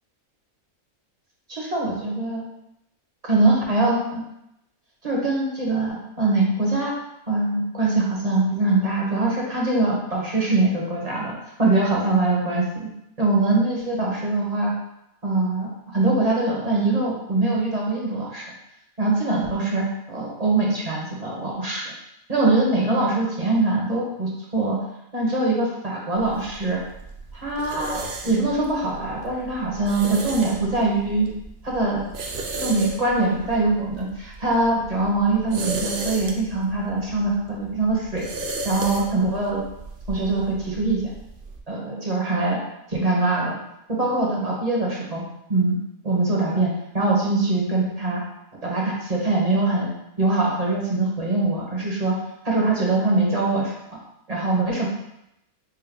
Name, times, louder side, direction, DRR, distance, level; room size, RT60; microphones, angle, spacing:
voice 1, 1.5-2.4 3.2-4.3 5.0-6.9 7.3-11.3 11.6-12.9 13.2-14.7 15.2-18.4 19.0-21.9 22.3-24.7 25.1-26.8 27.3-31.3 31.6-32.1 32.6-38.2 38.6-39.6 40.1-41.1 41.7-43.6 43.9-45.2 45.5-45.8 46.0-48.2 48.6-52.2 52.4-54.0 54.3-54.9, right 2 dB, 30° right, -4 dB, 0.9 m, -23 dB
sound 1, 26.1-41.6, right 2 dB, 60° right, 0.5 m, -35 dB
6.1 x 2.1 x 3.6 m, 0.83 s
omnidirectional pair, 1.5 m